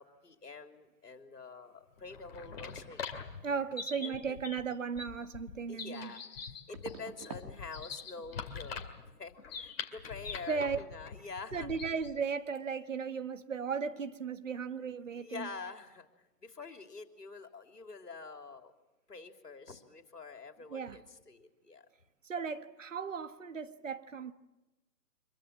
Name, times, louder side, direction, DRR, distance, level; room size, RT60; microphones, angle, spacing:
voice 1, 0.0-3.1 4.0-4.4 5.7-8.8 9.2-11.7 15.1-18.7 19.1-21.9, left 4 dB, 80° left, 3.2 m, -47 dB
sound 1, 2.0-12.2, left 5 dB, 40° left, 2.4 m, -44 dB
voice 2, 3.4-6.2 10.5-10.8 11.5-15.5 20.7-21.0 22.2-24.3, right 5 dB, 50° right, 1.5 m, -36 dB
sound 2, 5.2-5.3 6.7-7.5 7.8-8.2 8.5-8.6 11.6-11.7 11.9-12.2 12.5-12.6, right 5 dB, 25° right, 1.8 m, -48 dB
25.0 x 22.5 x 7.4 m
figure-of-eight pair, 155°, 47 cm